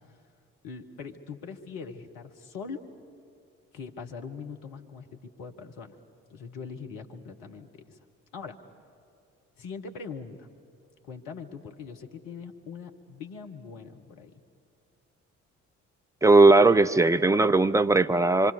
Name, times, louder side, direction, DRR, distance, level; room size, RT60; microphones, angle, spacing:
voice 1, 0.6-2.8 3.7-6.0 6.3-8.0 8.3-8.6 9.6-10.5 11.0-14.3, left 5 dB, 60° left, 5 dB, 1.5 m, -41 dB
voice 2, 16.2-18.5, right 2 dB, 10° right, 12 dB, 0.6 m, -18 dB
25.5 x 24.5 x 6.8 m, 2.5 s
figure-of-eight pair, 45°, 38 cm